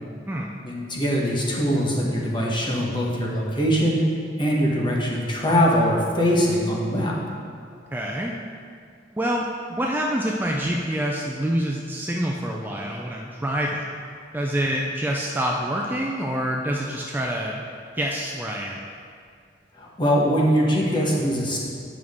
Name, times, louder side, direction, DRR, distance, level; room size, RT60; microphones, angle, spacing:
voice 1, 0.6-4.0 4.4-7.1 19.7-21.6, equal, 25° left, -3 dB, 1.2 m, -22 dB
voice 2, 7.9-8.3 9.1-13.8 14.3-17.6 17.9-18.8, equal, 10° right, -1 dB, 0.4 m, -26 dB
8.5 x 6.0 x 3.6 m, 2.3 s
head